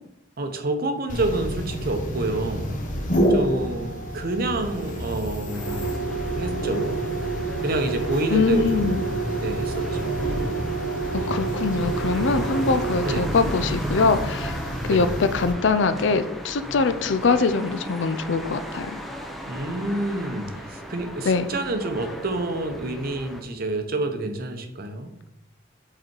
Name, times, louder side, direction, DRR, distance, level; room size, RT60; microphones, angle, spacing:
voice 1, 0.4-2.8 3.3-6.0 6.4-6.9 7.6-9.0 9.4-10.1 11.2-11.4 13.0-13.3 14.9-15.1 19.5-25.1, right 2 dB, 50° right, 6 dB, 0.7 m, -28 dB
sound 1, 1.1-15.5, right 2 dB, 40° left, 1.1 m, -28 dB
sound 2, 5.5-23.4, equal, ahead, 0.6 m, -36 dB
voice 2, 8.3-9.0 11.1-14.6 14.9-19.0 21.2-21.5, left 4 dB, 65° left, 11 dB, 0.4 m, -23 dB
5.2 x 4.1 x 4.6 m, 0.84 s
head